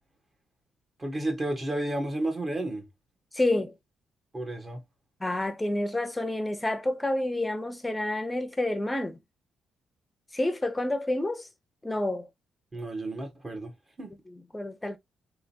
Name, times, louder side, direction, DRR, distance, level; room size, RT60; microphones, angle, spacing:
voice 1, 1.0-2.9 4.3-4.8 12.7-13.7 14.0-14.1, right 1 dB, 25° right, 1.6 m, -32 dB
voice 2, 3.3-3.7 5.2-9.2 10.3-11.5 11.8-12.3 14.3-15.0, left 1 dB, 15° left, 0.8 m, -29 dB
3.7 x 3.1 x 2.8 m
cardioid pair, 90°, 0 cm